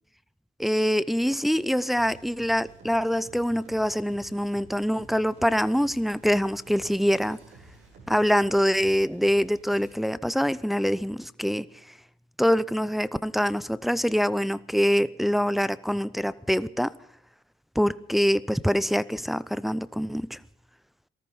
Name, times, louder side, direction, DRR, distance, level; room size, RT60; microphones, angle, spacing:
voice 1, 0.6-7.4 8.1-11.6 12.4-16.9 17.8-20.4, equal, ahead, 0.6 m, -24 dB
sound 1, 1.9-9.9, right 3 dB, 85° right, 6.2 m, -52 dB
19.0 x 13.5 x 5.5 m
cardioid pair, 90°, 20 cm